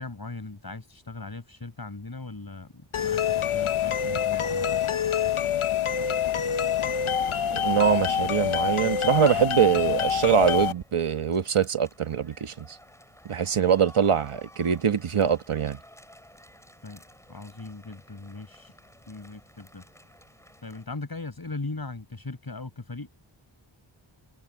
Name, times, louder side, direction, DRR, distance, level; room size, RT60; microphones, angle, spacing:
voice 1, 0.0-4.9 16.8-17.0 17.3-18.7 19.1-19.8 20.6-23.1, left 3 dB, 45° left, 7.5 m, -39 dB
sound 1, 2.9-10.7, left 8 dB, 80° left, 0.9 m, -26 dB
voice 2, 7.5-12.8 13.2-15.8, right 7 dB, 85° right, 1.3 m, -23 dB
sound 2, 8.7-20.9, equal, 5° left, 6.8 m, -54 dB
wide cardioid pair, 85°, 49 cm